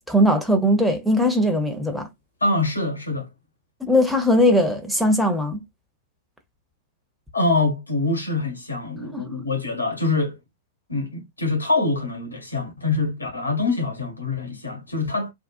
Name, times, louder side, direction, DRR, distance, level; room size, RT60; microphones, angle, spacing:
voice 1, 0.1-2.1 3.8-5.6 9.1-9.2, equal, ahead, 0.7 m, -19 dB
voice 2, 2.4-3.3 7.3-10.4 10.9-15.3, left 3 dB, 80° left, 1.3 m, -24 dB
3.6 x 2.2 x 2.5 m
figure-of-eight pair, 100°, 0 cm